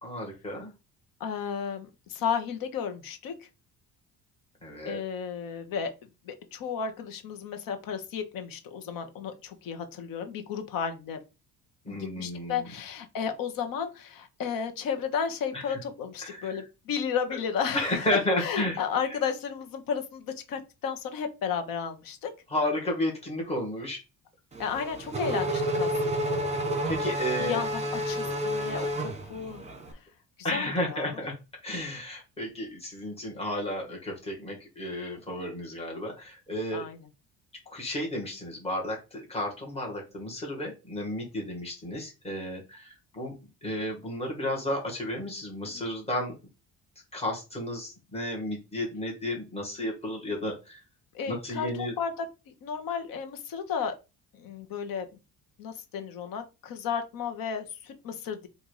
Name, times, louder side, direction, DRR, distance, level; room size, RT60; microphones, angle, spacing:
voice 1, 0.0-0.7 4.6-5.0 11.8-12.6 15.5-15.8 16.2-16.6 17.3-17.4 17.7-18.8 22.5-24.0 26.8-27.6 30.4-31.3 31.6-36.9 37.7-43.3 43.6-46.4 47.1-50.8 51.3-51.9, left 1 dB, 15° left, -1 dB, 1.8 m, -32 dB
voice 2, 1.2-3.5 4.8-5.9 6.2-11.2 11.9-17.8 18.4-22.3 24.6-26.4 27.4-29.6 29.9-30.0 30.5-31.2 36.7-37.1 45.6-45.8 51.1-53.9 54.3-55.1 55.6-58.5, left 7 dB, 70° left, 7 dB, 1.0 m, -33 dB
Race car auto racing / Accelerating revving vroom, 24.6-29.8, equal, 20° right, 1.1 m, -30 dB
3.8 x 2.6 x 4.7 m, 0.28 s
cardioid pair, 135°, 35 cm